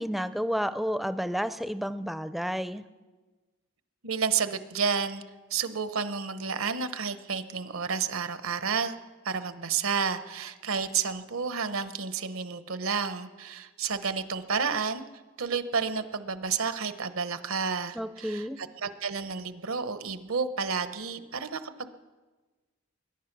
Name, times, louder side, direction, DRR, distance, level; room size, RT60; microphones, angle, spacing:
voice 1, 0.0-2.8 18.0-18.6, equal, ahead, 12 dB, 0.4 m, -31 dB
voice 2, 4.0-5.2 5.5-9.0 9.2-15.0 15.4-21.9, right 5 dB, 80° right, 11 dB, 0.9 m, -31 dB
22.0 x 10.5 x 6.0 m, 1.3 s
head